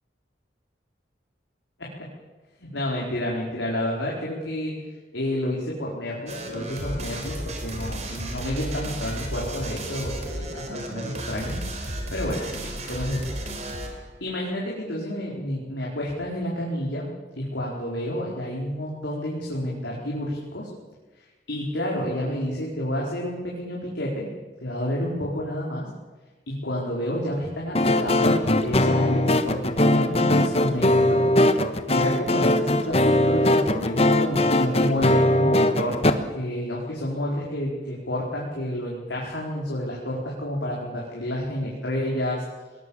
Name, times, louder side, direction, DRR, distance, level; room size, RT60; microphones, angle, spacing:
voice 1, 2.6-4.7 5.1-13.4 14.2-17.1 17.4-20.7 21.5-24.3 24.6-25.9 26.5-31.2 31.9-42.4, equal, 80° left, -4 dB, 4.7 m, -29 dB
sound 1, 6.3-14.1, right 1 dB, 35° right, 4.0 m, -33 dB
sound 2, 27.7-36.1, left 1 dB, 35° left, 1.2 m, -20 dB
20.0 x 20.0 x 7.3 m, 1.3 s
head